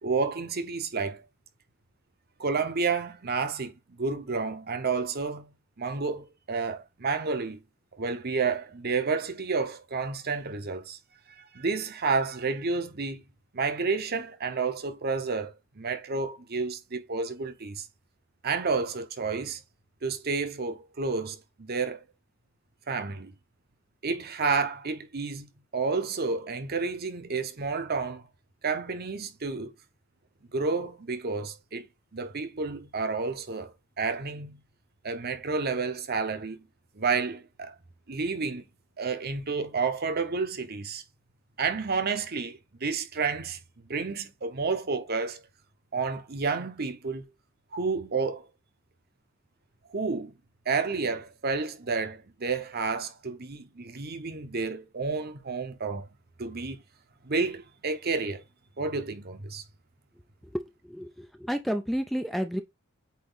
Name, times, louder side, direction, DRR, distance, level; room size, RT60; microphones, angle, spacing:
voice 1, 0.0-1.2 2.4-5.5 5.8-7.6 8.0-11.0 11.3-13.2 13.5-17.9 18.4-19.6 20.0-22.0 22.9-23.3 24.0-28.2 28.6-29.7 30.5-31.9 32.1-34.6 35.0-36.7 36.9-37.7 38.1-38.6 39.0-41.0 41.6-43.6 43.9-45.4 45.9-47.3 47.7-48.5 49.9-50.3 50.7-56.1 56.4-56.8 57.2-58.4 58.8-59.6, right 4 dB, 50° right, 1.0 m, -30 dB
voice 2, 60.5-62.6, equal, ahead, 0.5 m, -31 dB
8.4 x 3.0 x 4.0 m
head